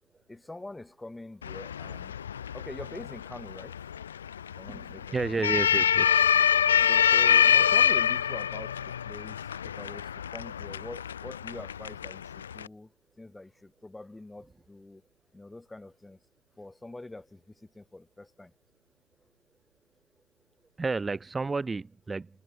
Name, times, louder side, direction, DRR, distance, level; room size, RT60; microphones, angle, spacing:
voice 1, 0.3-2.1 2.5-3.8 4.6-5.2 6.8-9.4 9.6-12.9 13.2-15.0 15.3-16.2 16.6-17.4 17.7-18.5, left 2 dB, 5° left, 3.4 m, -44 dB
sound 1, 1.4-12.7, left 8 dB, 65° left, 0.5 m, -26 dB
voice 2, 4.7-6.2 20.8-22.4, right 3 dB, 10° right, 2.3 m, -32 dB
figure-of-eight pair, 90°, 0 cm